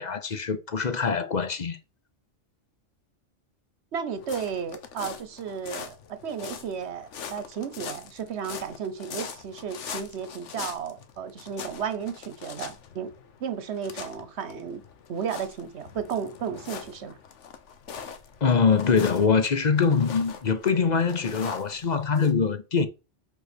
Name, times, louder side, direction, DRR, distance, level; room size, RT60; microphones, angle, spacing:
voice 1, 0.0-1.8 18.4-22.9, left 5 dB, 45° left, 0.8 m, -23 dB
voice 2, 3.9-13.1 13.4-14.8 15.1-17.2, right 7 dB, 70° right, 1.1 m, -33 dB
sound 1, 4.2-22.3, left 7 dB, 80° left, 1.2 m, -42 dB
5.4 x 4.2 x 6.0 m
omnidirectional pair, 1.2 m